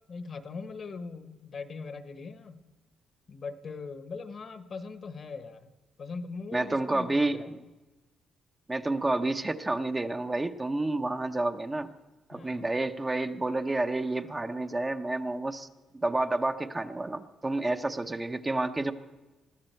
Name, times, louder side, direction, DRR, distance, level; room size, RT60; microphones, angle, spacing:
voice 1, 0.1-2.6 3.3-5.7 6.0-7.6 12.3-12.7, left 4 dB, 50° left, 9 dB, 1.1 m, -41 dB
voice 2, 6.5-7.6 8.7-11.9 12.3-15.7 15.9-18.9, right 2 dB, 20° right, 7 dB, 0.7 m, -30 dB
21.0 x 14.5 x 4.5 m, 1.2 s
cardioid pair, 90°, 0 cm